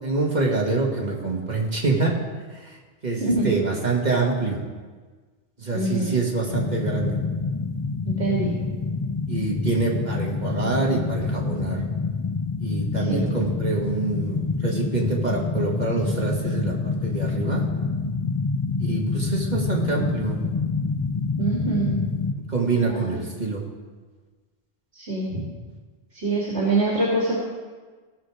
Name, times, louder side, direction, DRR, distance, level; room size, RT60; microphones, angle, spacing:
voice 1, 0.0-2.1 2.6-2.7 3.0-4.6 5.6-7.2 9.3-11.8 12.6-17.6 18.8-20.5 22.5-23.6, right 3 dB, 40° right, -2 dB, 2.1 m, -26 dB
voice 2, 3.2-3.5 5.7-6.1 8.0-8.5 13.0-13.3 21.4-21.9 22.8-23.1 24.9-25.5 26.2-27.4, right 2 dB, 65° right, -5 dB, 2.4 m, -24 dB
sound 1, 6.5-22.3, left 4 dB, 35° left, 0.4 m, -27 dB
17.0 x 6.9 x 4.9 m, 1.4 s
omnidirectional pair, 1.2 m